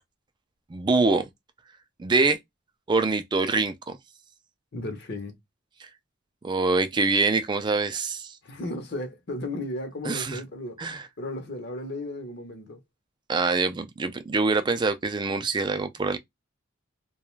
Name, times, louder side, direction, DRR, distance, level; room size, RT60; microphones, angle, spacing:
voice 1, 0.7-1.3 2.0-2.4 2.9-4.0 6.4-8.4 10.0-10.4 10.8-11.0 13.3-16.2, right 3 dB, 20° right, 0.3 m, -24 dB
voice 2, 4.7-5.4 8.4-12.8, left 1 dB, 55° left, 0.8 m, -35 dB
2.4 x 2.2 x 3.0 m
head